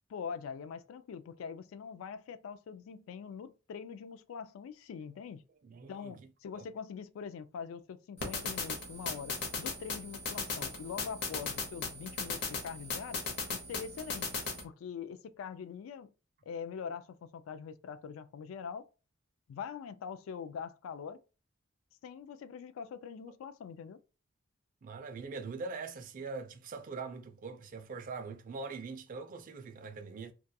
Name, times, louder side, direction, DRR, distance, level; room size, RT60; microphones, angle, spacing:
voice 1, 0.1-5.4 5.9-13.2 13.5-14.3 14.6-16.1 16.5-18.9 19.5-21.2 22.0-24.0, left 6 dB, 80° left, 0.3 m, -43 dB
voice 2, 5.6-6.1 6.5-6.7 24.8-30.3, right 4 dB, 40° right, 0.3 m, -42 dB
sound 1, 8.2-14.6, left 4 dB, 55° left, 0.8 m, -38 dB
2.3 x 2.2 x 2.6 m
head